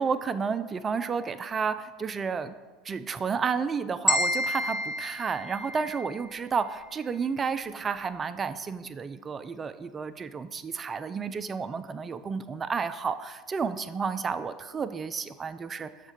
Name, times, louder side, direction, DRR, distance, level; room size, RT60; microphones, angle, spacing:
voice 1, 0.0-2.5 2.8-15.9, right 5 dB, 30° right, 11 dB, 0.3 m, -31 dB
sound 1, 4.1-6.3, left 1 dB, 20° left, 0.9 m, -29 dB
6.3 x 3.6 x 5.0 m, 1.4 s
hypercardioid pair, 80°, 0 cm